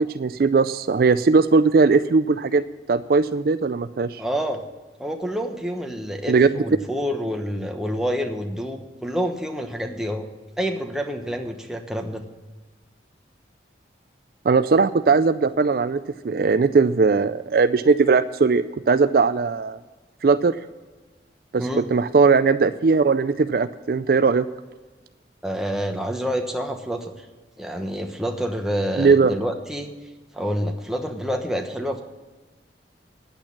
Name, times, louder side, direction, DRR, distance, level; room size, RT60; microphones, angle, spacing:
voice 1, 0.0-4.2 6.3-6.5 14.5-19.8 20.2-20.6 21.5-24.5 29.0-29.3, right 4 dB, 55° right, 11 dB, 0.4 m, -19 dB
voice 2, 4.2-4.6 5.0-10.3 10.6-12.2 21.6-21.9 25.4-27.2 27.6-29.9 30.3-32.0, equal, 5° right, 2 dB, 1.0 m, -28 dB
10.5 x 8.9 x 7.2 m, 1.3 s
head